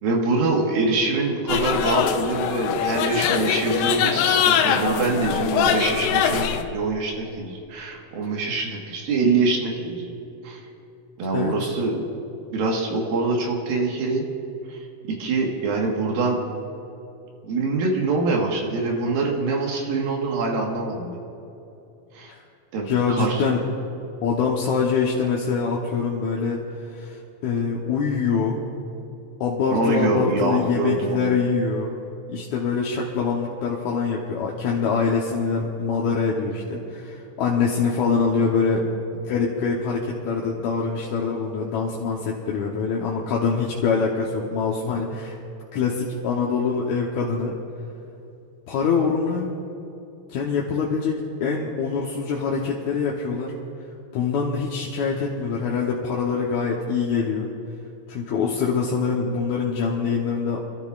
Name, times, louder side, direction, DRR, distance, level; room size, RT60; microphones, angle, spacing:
voice 1, 0.0-10.1 10.4-10.6 11.2-12.0 12.5-14.3 14.7-14.8 15.2-16.4 17.5-21.2 22.1-22.3 22.7-23.4 29.7-31.3, right 3 dB, 85° right, -1 dB, 3.3 m, -24 dB
Street fair with salesman shouting, 1.5-6.6, left 8 dB, 90° left, 2.4 m, -22 dB
voice 2, 11.3-11.7 22.3-22.4 22.8-23.6 24.2-26.6 26.9-28.6 29.4-32.0 32.3-38.8 39.1-45.4 45.7-47.6 48.7-49.5 50.3-53.5 54.1-57.5 58.1-60.6, left 5 dB, 70° left, -3 dB, 2.0 m, -24 dB
28.5 x 13.0 x 2.4 m, 2.8 s
omnidirectional pair, 4.1 m